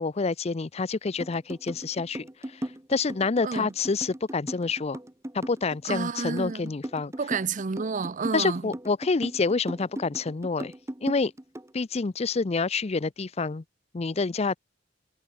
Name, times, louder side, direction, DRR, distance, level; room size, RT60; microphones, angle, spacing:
voice 1, 0.0-2.3 2.9-5.0 5.3-7.1 8.3-10.7 11.0-11.3 11.7-13.6 13.9-14.6, left 4 dB, 35° left, 0.5 m, -27 dB
sound 1, 1.2-11.7, right 1 dB, 15° right, 1.1 m, -37 dB
voice 2, 5.8-6.7 7.2-8.7, right 5 dB, 40° right, 0.6 m, -30 dB
head